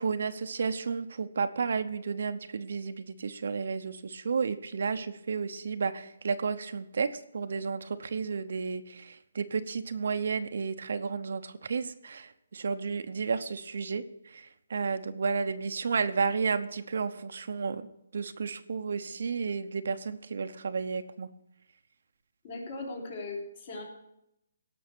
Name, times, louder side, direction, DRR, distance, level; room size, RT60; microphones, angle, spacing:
voice 1, 0.0-17.9 18.1-21.3, right 5 dB, 65° right, 10 dB, 0.8 m, -32 dB
voice 2, 22.4-23.8, left 3 dB, 40° left, 0 dB, 3.6 m, -38 dB
17.0 x 6.2 x 6.2 m, 0.81 s
hypercardioid pair, 165°, 0 cm